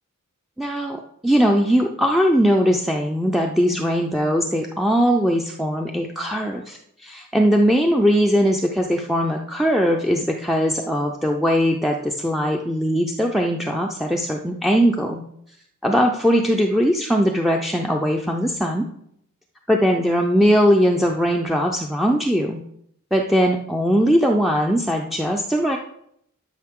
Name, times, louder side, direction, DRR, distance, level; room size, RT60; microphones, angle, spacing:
voice 1, 0.6-15.2 15.8-18.9 19.7-22.6 23.1-25.8, equal, ahead, 1 dB, 0.5 m, -20 dB
12.0 x 5.4 x 3.7 m, 0.72 s
head